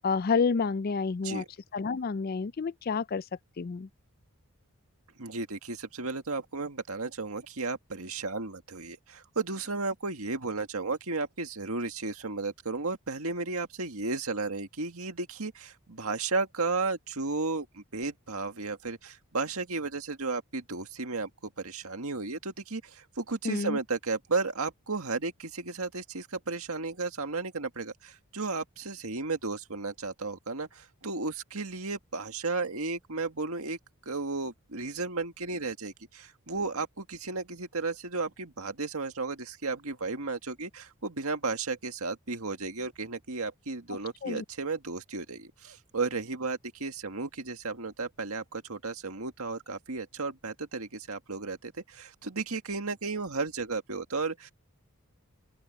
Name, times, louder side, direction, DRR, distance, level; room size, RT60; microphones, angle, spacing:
voice 1, 0.0-1.4 1.7-3.3 3.6-3.9 23.4-23.8 44.2-44.4, left 5 dB, 40° left, 0.4 m, -29 dB
voice 2, 5.2-21.3 21.6-33.8 34.1-54.5, right 3 dB, 80° right, 1.9 m, -34 dB
open air
head